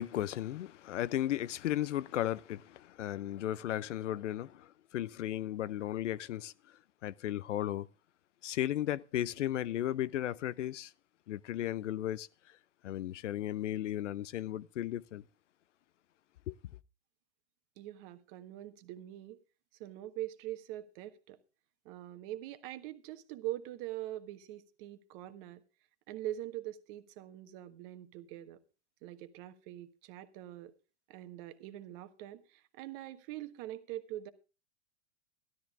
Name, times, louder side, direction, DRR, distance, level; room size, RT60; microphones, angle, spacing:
voice 1, 0.0-6.5 7.0-7.9 8.4-10.9 11.3-12.3 12.8-15.2 16.5-16.6, left 12 dB, 75° left, 0.7 m, -35 dB
voice 2, 17.8-19.4 19.8-21.4 21.8-25.6 26.1-28.6 29.0-30.7 31.1-34.3, right 14 dB, 45° right, 1.4 m, -43 dB
13.0 x 12.5 x 3.6 m
hypercardioid pair, 110°, 36 cm